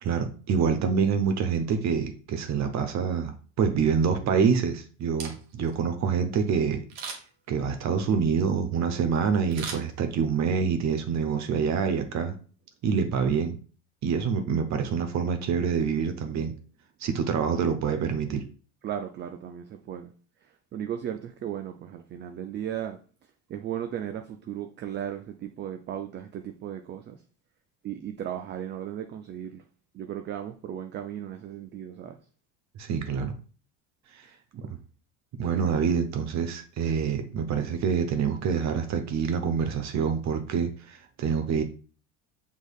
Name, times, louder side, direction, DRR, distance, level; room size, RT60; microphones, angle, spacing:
voice 1, 0.0-6.8 7.5-12.3 12.8-13.6 14.0-16.5 17.0-18.4 32.8-33.3 34.1-34.2 34.6-34.8 35.4-41.6, right 6 dB, 45° right, 0.8 m, -26 dB
Camera, 5.0-5.8 6.9-7.5 9.5-10.4 10.9-11.0, right 5 dB, 70° right, 1.3 m, -39 dB
voice 2, 18.8-20.1 20.7-23.0 23.5-27.2 27.8-29.6 29.9-32.2 34.2-34.4 35.5-35.7, right 10 dB, 30° right, 0.4 m, -36 dB
6.1 x 3.6 x 2.3 m
hypercardioid pair, 85°, 38 cm